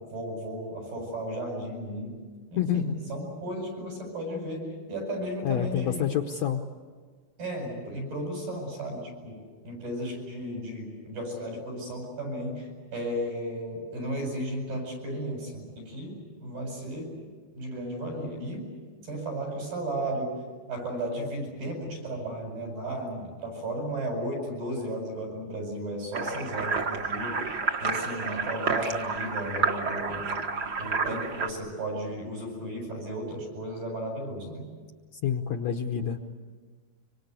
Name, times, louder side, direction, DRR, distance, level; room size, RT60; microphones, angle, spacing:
voice 1, 0.0-2.2 2.5-6.1 7.4-17.2 17.6-18.7 19.0-20.4 20.7-27.4 27.8-30.4 30.8-34.7, right 1 dB, 85° right, 1 dB, 9.9 m, -34 dB
voice 2, 2.6-3.0 5.4-6.6 35.2-36.2, left 9 dB, 70° left, 4 dB, 1.7 m, -27 dB
sound 1, 26.1-31.5, right 4 dB, 50° right, 1.2 m, -30 dB
25.5 x 25.0 x 8.2 m, 1.5 s
omnidirectional pair, 4.2 m